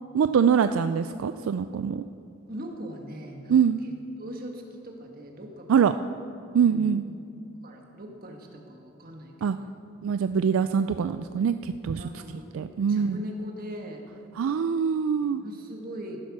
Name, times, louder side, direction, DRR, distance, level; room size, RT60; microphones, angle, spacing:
voice 1, 0.1-2.0 3.5-3.8 5.7-5.9 6.5-7.0 9.4-9.6 10.0-12.0 12.5-13.2 14.4-15.4, right 7 dB, 75° right, 10 dB, 0.3 m, -23 dB
voice 2, 2.5-3.6 3.8-3.9 4.2-5.9 6.6-6.9 7.6-9.7 12.0-14.0 15.2-16.2, right 1 dB, 45° right, 2 dB, 1.6 m, -41 dB
14.5 x 8.5 x 6.0 m, 2.5 s
head